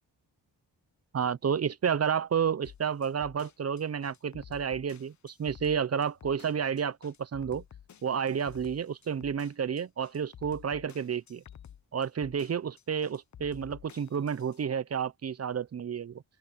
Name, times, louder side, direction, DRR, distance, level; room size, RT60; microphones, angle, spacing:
voice 1, 1.1-7.6 8.0-11.4 11.9-16.2, right 7 dB, 40° right, 0.4 m, -31 dB
sound 1, 2.6-14.6, left 9 dB, 45° left, 0.5 m, -51 dB
open air
wide cardioid pair, 175°, 42 cm